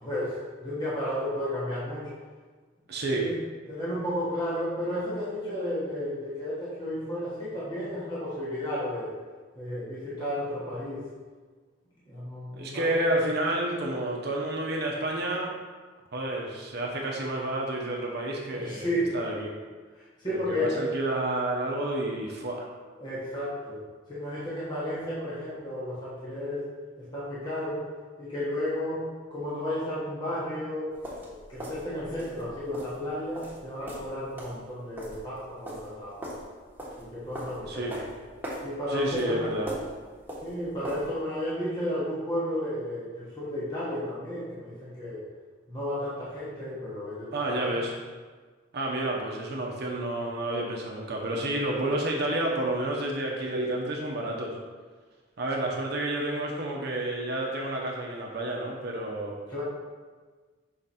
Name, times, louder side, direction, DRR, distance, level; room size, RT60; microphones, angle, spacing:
voice 1, 0.0-2.1 3.1-3.3 3.7-9.1 9.5-11.1 12.0-13.0 18.5-19.1 19.9-20.8 23.0-26.6 27.0-27.9 28.2-30.9 31.3-36.3 37.0-38.0 38.6-39.6 40.4-45.2 45.7-47.8 59.5-59.6, left 1 dB, 25° left, -9 dB, 1.2 m, -33 dB
voice 2, 2.9-3.2 12.6-15.6 16.1-19.5 20.5-22.7 37.7-37.9 38.9-39.7 47.3-47.9 48.7-54.6 55.4-59.4, right 1 dB, 60° right, -1 dB, 0.8 m, -30 dB
sound 1, 30.9-41.2, equal, 10° right, 1.3 m, -41 dB
5.8 x 3.8 x 4.2 m, 1.4 s
head